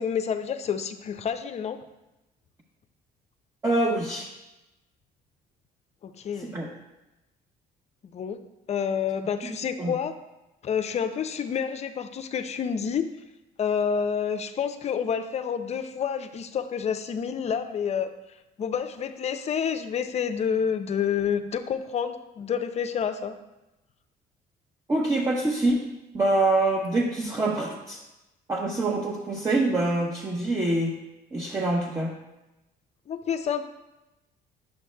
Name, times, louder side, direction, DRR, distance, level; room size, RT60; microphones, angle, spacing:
voice 1, 0.0-1.8 6.0-6.5 8.1-8.4 8.7-10.1 10.6-13.1 13.6-18.1 18.6-23.4 33.1-33.6, left 7 dB, 40° left, 9 dB, 0.5 m, -28 dB
voice 2, 3.6-4.3 6.5-6.7 9.8-9.9 24.9-25.8 26.1-28.0 28.5-30.9 31.3-32.1, right 2 dB, 20° right, -3 dB, 0.9 m, -25 dB
8.8 x 7.0 x 2.2 m, 0.97 s
cardioid pair, 110°, 17 cm